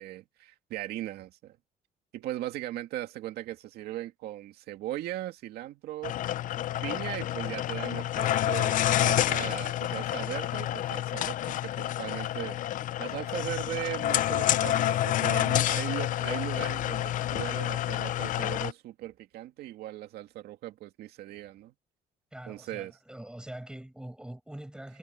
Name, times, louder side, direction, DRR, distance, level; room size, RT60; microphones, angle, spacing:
voice 1, 0.0-1.6 2.1-6.2 6.8-12.6 13.0-21.7 22.5-22.9, right 14 dB, 85° right, 2.4 m, -38 dB
sound 1, 6.0-18.7, left 13 dB, 55° left, 0.5 m, -29 dB
voice 2, 22.3-25.0, right 1 dB, 5° right, 6.7 m, -43 dB
cardioid pair, 130°, 16 cm